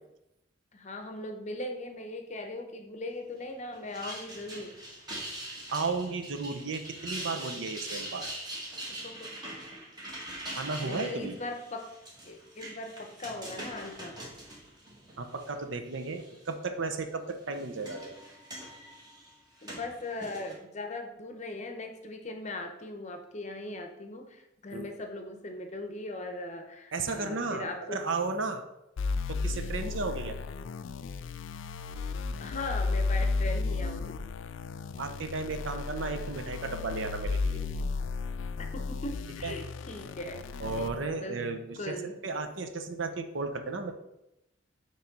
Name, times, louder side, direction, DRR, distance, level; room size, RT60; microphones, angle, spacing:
voice 1, 0.7-4.8 7.5-7.6 8.9-9.3 10.8-11.9 12.3-14.2 19.6-28.0 32.4-34.2 38.6-40.4 40.8-41.5 41.8-42.2, left 2 dB, 35° left, 5 dB, 0.7 m, -39 dB
sound 1, 3.7-15.5 15.9-16.5 17.3-20.5, right 1 dB, 20° right, 1.2 m, -43 dB
voice 2, 5.7-8.3 10.6-11.4 15.2-18.2 24.7-24.9 26.9-28.7 29.3-30.4 35.0-37.6 39.4-39.5 40.6-43.9, right 3 dB, 70° right, 7 dB, 0.6 m, -34 dB
sound 2, 29.0-40.9, left 4 dB, 70° left, 0.4 m, -33 dB
7.0 x 3.1 x 5.2 m, 0.89 s
head